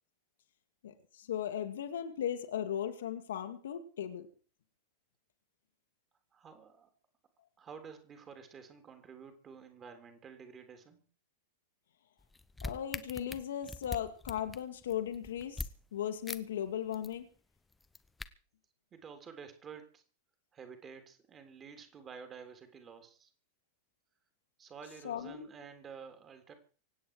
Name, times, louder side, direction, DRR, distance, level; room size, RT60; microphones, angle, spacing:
voice 1, 0.8-4.3 12.6-17.3 25.0-25.5, left 9 dB, 60° left, 7 dB, 2.1 m, -37 dB
voice 2, 6.3-6.9 7.6-11.1 18.9-20.0 20.5-23.3 24.6-26.5, right 6 dB, 25° right, 7 dB, 3.5 m, -50 dB
sound 1, 12.2-15.7 16.3-16.4 16.7-17.2 17.7-18.3, left 3 dB, 10° left, 1.0 m, -42 dB
25.5 x 9.3 x 4.8 m, 0.38 s
figure-of-eight pair, 90°, 0 cm